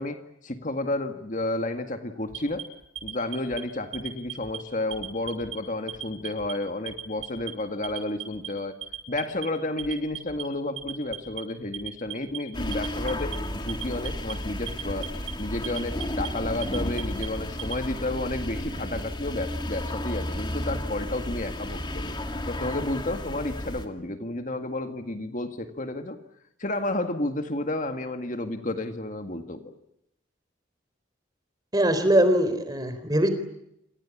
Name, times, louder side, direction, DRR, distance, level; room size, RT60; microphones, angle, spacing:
voice 1, 0.0-2.6 3.0-8.8 9.1-15.1 15.4-22.2 22.5-26.2 26.6-29.7, left 2 dB, 40° left, 7 dB, 2.0 m, -31 dB
Alarm, 2.3-3.6 3.9-4.6 4.9-5.6 5.9-6.5 6.9-7.5 7.8-8.5 8.8-9.5 9.8-10.4 10.8-11.4 11.7-12.4 12.7-13.4 13.7-14.3 14.7-15.3 15.6-16.3 16.6-17.8, right 10 dB, 80° right, 7.0 m, -37 dB
sound 1, 12.5-23.9, left 1 dB, 25° left, 2.6 m, -33 dB
voice 2, 31.7-33.3, right 1 dB, 20° right, 10 dB, 4.0 m, -22 dB
28.0 x 27.5 x 7.3 m, 0.79 s
head